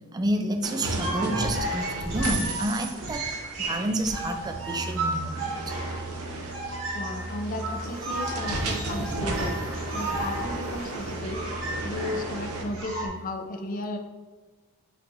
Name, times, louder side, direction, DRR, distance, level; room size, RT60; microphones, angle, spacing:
voice 1, 0.1-3.3 3.6-5.7 8.0-8.1, right 1 dB, 20° right, 6 dB, 0.4 m, -30 dB
sound 1, 0.6-12.6, right 2 dB, 80° right, 0.8 m, -34 dB
sound 2, 1.0-13.1, right 2 dB, 65° right, 1.2 m, -34 dB
sound 3, 4.4-12.8, right 1 dB, 85° left, 1.0 m, -39 dB
voice 2, 6.9-9.5 9.9-11.4 11.8-14.0, left 1 dB, 40° left, 5 dB, 0.5 m, -34 dB
5.5 x 2.4 x 4.0 m, 1.4 s
head